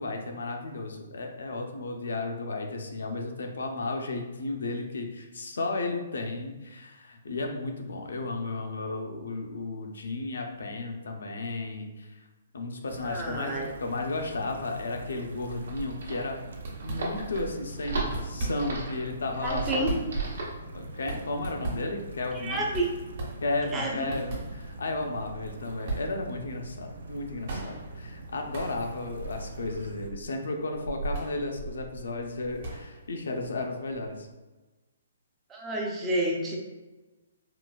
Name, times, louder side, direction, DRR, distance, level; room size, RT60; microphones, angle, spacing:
voice 1, 0.0-12.2 12.5-16.4 16.8-19.8 20.7-22.7 23.4-34.3, left 2 dB, 85° left, 3 dB, 0.5 m, -34 dB
sound 1, 12.9-30.1, right 2 dB, 85° right, 0.4 m, -44 dB
voice 2, 13.0-13.7 19.4-19.9 22.3-22.9 23.7-24.1 35.5-36.6, right 1 dB, 10° right, -1 dB, 0.4 m, -30 dB
sound 2, 15.5-20.6, right 3 dB, 65° right, 0.8 m, -34 dB
sound 3, 16.6-17.5 18.0-18.9 19.4-34.3, right 2 dB, 45° right, 1.0 m, -39 dB
3.9 x 2.4 x 2.3 m, 1.2 s
hypercardioid pair, 170°, 0 cm